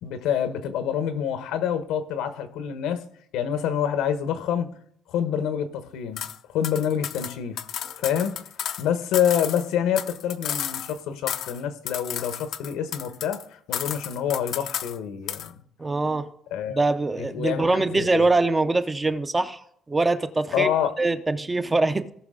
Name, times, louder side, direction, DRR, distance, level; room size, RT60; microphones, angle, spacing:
voice 1, 0.0-3.0 3.3-4.7 5.1-7.6 8.0-8.4 8.8-15.5 16.5-16.8 17.2-18.3 20.5-20.9, left 9 dB, 90° left, 1.1 m, -27 dB
sound 1, 6.2-6.4 6.6-8.8 9.1-11.0 11.3-11.6 11.9-13.4 13.7-15.0 15.3-15.5, left 10 dB, 55° left, 0.5 m, -32 dB
voice 2, 15.8-16.3 16.7-20.7 21.0-22.1, right 2 dB, 15° right, 0.5 m, -23 dB
17.5 x 5.9 x 3.7 m
cardioid pair, 155°, 0 cm